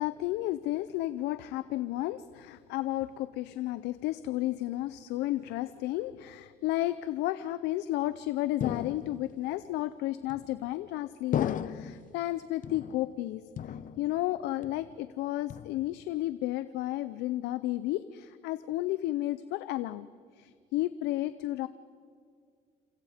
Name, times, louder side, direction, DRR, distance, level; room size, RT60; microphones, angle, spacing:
voice 1, 0.0-13.5 14.0-20.1 20.4-21.7, left 15 dB, 90° left, 14 dB, 0.6 m, -32 dB
sound 1, 8.6-9.5 10.3-10.8 11.3-12.1 12.6-13.2 13.6-14.3 14.6-15.1 15.5-16.1, left 9 dB, 50° left, 0.9 m, -36 dB
28.0 x 27.5 x 5.1 m, 2.2 s
cardioid pair, 110°, 17 cm